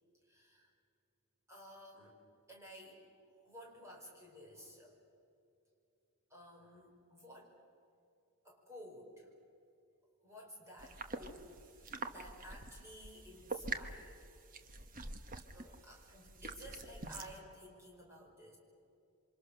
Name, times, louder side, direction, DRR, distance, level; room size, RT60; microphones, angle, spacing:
voice 1, 0.2-0.7 1.5-2.2 2.5-3.0 3.3-4.9 6.3-7.5 8.4-9.3 10.2-14.4 15.5-18.6, equal, 15° right, -1 dB, 5.3 m, -54 dB
sound 1, 10.8-17.4, right 3 dB, 40° right, 1.3 m, -46 dB
28.0 x 25.5 x 6.6 m, 2.6 s
head